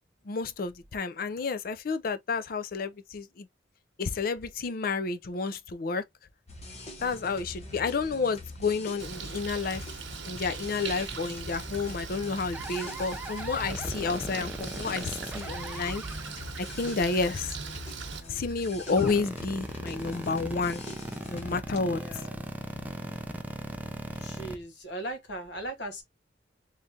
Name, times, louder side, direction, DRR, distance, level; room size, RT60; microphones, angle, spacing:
voice 1, 0.3-3.5 4.0-6.0 7.0-9.9 10.2-16.0 16.6-17.6 18.3-20.8 21.3-22.2, left 4 dB, 50° left, 0.4 m, -30 dB
sound 1, 6.5-21.6, left 2 dB, 35° left, 0.8 m, -44 dB
Bird, 9.0-18.2, right 4 dB, 85° right, 0.9 m, -40 dB
sound 2, 12.5-24.5, right 1 dB, 10° right, 0.5 m, -38 dB
voice 2, 21.7-22.4 24.2-26.0, right 1 dB, 70° left, 1.3 m, -38 dB
3.6 x 3.1 x 2.7 m
head